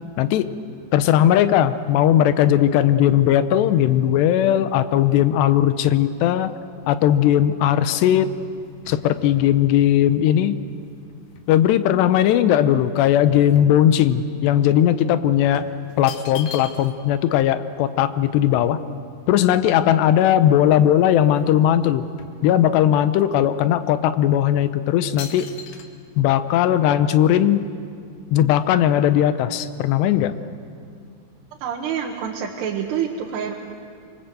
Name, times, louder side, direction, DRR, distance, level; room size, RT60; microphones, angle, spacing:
voice 1, 0.2-0.5 0.9-6.5 6.9-8.3 8.9-10.6 11.5-15.7 16.0-18.8 19.3-22.1 22.4-25.5 26.2-27.7 28.3-30.3, left 11 dB, 85° left, 12 dB, 3.0 m, -18 dB
sound 1, 6.8-11.7 12.2-14.3 14.6-14.8 15.5-17.1 17.4-17.5 17.7-19.9 20.4-20.5 20.8-21.6 21.8-23.1 23.6-23.8 24.4-24.7 25.2-25.9, left 7 dB, 70° left, 3.1 m, -42 dB
voice 2, 31.6-33.6, right 8 dB, 80° right, -1 dB, 3.5 m, -27 dB
25.5 x 25.0 x 7.8 m, 2.3 s
omnidirectional pair, 4.8 m